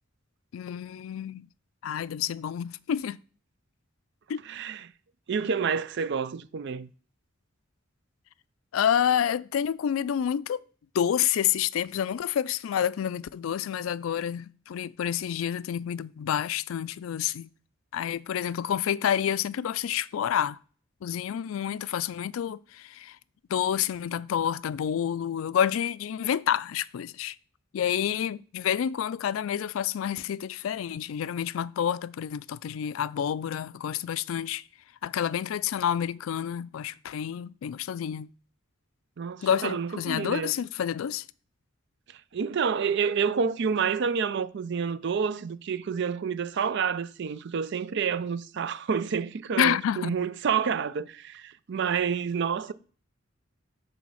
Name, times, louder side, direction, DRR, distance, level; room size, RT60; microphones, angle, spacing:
voice 1, 0.5-1.5 1.8-3.2 4.3-4.4 8.7-10.6 10.9-17.5 17.9-20.6 21.0-23.2 23.5-27.4 27.7-34.6 35.0-38.3 39.4-41.3 49.6-50.2, left 9 dB, 85° left, 0.3 m, -28 dB
voice 2, 4.5-4.9 5.3-6.9 39.2-40.5 42.1-52.7, right 6 dB, 60° right, 0.4 m, -29 dB
8.1 x 3.4 x 6.2 m
head